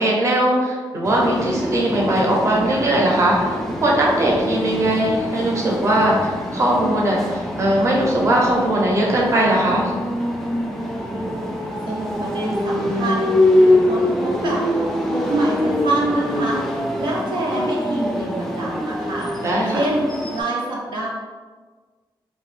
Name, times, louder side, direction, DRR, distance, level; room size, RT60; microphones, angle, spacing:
voice 1, 0.0-3.5 3.8-9.9 19.4-19.8, right 1 dB, 35° right, -3 dB, 0.7 m, -19 dB
sound 1, 1.0-20.4, left 1 dB, 5° left, 0.3 m, -24 dB
voice 2, 11.9-13.3 13.6-14.6 15.1-16.6 17.0-19.3 19.7-20.1 20.3-21.1, right 2 dB, 70° right, -4 dB, 0.5 m, -25 dB
2.8 x 2.2 x 3.1 m, 1.4 s
wide cardioid pair, 125°, 9 cm